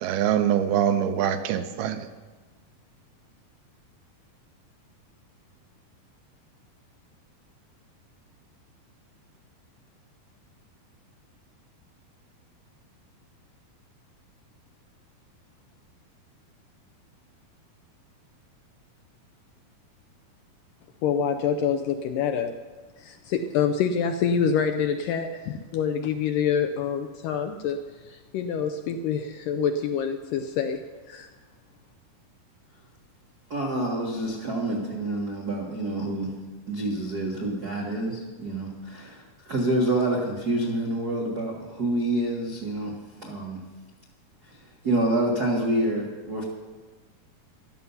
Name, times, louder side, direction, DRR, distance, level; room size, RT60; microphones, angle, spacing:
voice 1, 0.0-2.1, right 9 dB, 85° right, 9 dB, 2.8 m, -24 dB
voice 2, 21.0-22.6 23.0-27.8 28.0-31.3, left 7 dB, 80° left, 6 dB, 2.0 m, -26 dB
voice 3, 33.5-36.3 36.7-43.6 44.5-44.6 44.8-46.4, right 1 dB, 70° right, -1 dB, 0.9 m, -27 dB
15.0 x 12.5 x 5.6 m, 1.3 s
omnidirectional pair, 4.5 m